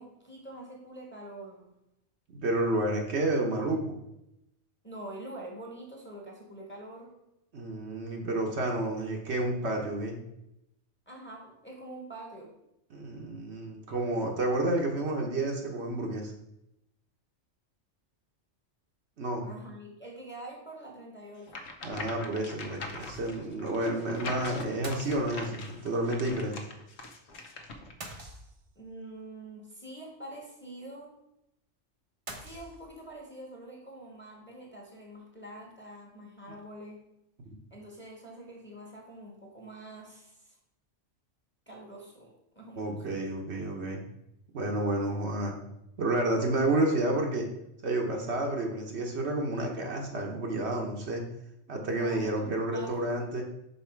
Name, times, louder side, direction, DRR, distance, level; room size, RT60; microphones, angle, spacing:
voice 1, 0.0-1.7 4.8-7.1 11.1-12.5 19.4-21.6 28.8-31.1 32.3-37.0 37.7-40.6 41.7-43.0 51.8-53.2, right 1 dB, 10° left, -1 dB, 1.2 m, -45 dB
voice 2, 2.3-4.0 7.5-10.2 12.9-16.3 19.2-19.5 21.8-26.6 42.8-44.0 44.5-45.5 46.0-47.5 47.8-51.2 51.7-53.4, right 2 dB, 65° right, 1 dB, 1.2 m, -30 dB
sound 1, 21.5-27.9, left 3 dB, 65° left, 1.1 m, -42 dB
sound 2, 22.9-23.5 23.8-23.9 24.8-25.7 28.0-28.9 32.3-33.2, right 2 dB, 30° right, 0.8 m, -45 dB
5.6 x 4.6 x 4.5 m, 0.84 s
omnidirectional pair, 1.3 m